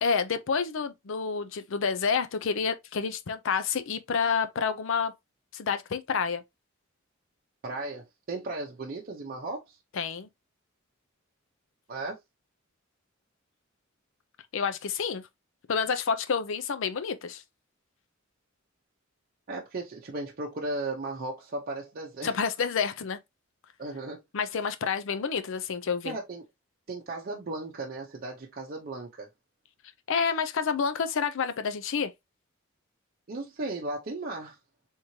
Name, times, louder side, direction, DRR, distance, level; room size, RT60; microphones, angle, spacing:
voice 1, 0.0-5.1 5.5-6.4 9.9-10.3 14.5-15.2 15.7-17.4 22.2-23.2 24.3-26.2 30.1-32.1, left 6 dB, 65° left, 0.5 m, -29 dB
voice 2, 7.6-9.8 11.9-12.2 19.5-22.4 23.8-24.2 26.0-26.4 26.9-29.3 33.3-34.6, right 2 dB, 45° right, 0.6 m, -36 dB
3.6 x 3.0 x 2.7 m
head